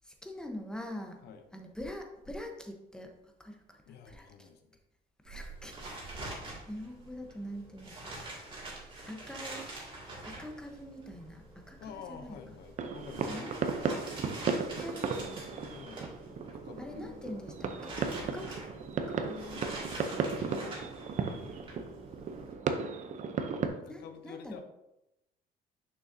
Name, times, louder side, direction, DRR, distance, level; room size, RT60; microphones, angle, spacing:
voice 1, 0.0-1.2 1.5-3.1 3.4-3.8 4.0-4.5 5.2-5.8 6.0-6.3 6.7-8.1 9.1-9.7 10.2-12.4 13.2-13.6 13.8-14.0 14.8-15.5 16.8-18.7 19.1-19.4 23.9-24.6, left 1 dB, 5° left, 3 dB, 1.0 m, -44 dB
voice 2, 3.9-4.8 11.8-13.6 15.6-17.4 19.0-20.8 21.2-21.6 23.7-24.6, left 6 dB, 75° left, 7 dB, 0.8 m, -49 dB
sound 1, 5.2-22.5, right 2 dB, 30° right, 2.4 m, -46 dB
sound 2, 12.8-23.7, right 5 dB, 45° right, 0.7 m, -35 dB
6.4 x 6.2 x 2.7 m, 0.90 s
cardioid pair, 110°, 17 cm